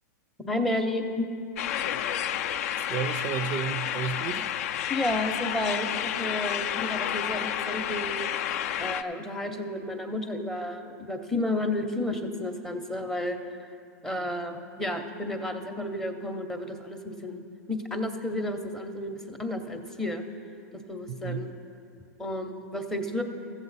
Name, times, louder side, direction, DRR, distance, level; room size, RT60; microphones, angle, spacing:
voice 1, 0.4-1.3 4.9-8.3 8.8-13.6 14.0-20.2 20.9-21.5 22.2-23.2, left 1 dB, 5° left, 5 dB, 0.6 m, -32 dB
sound 1, 1.6-9.0, left 10 dB, 60° left, 0.4 m, -30 dB
voice 2, 2.9-4.5 21.1-21.5, right 7 dB, 35° right, 10 dB, 0.4 m, -32 dB
14.5 x 7.4 x 4.0 m, 2.4 s
hypercardioid pair, 135°, 9 cm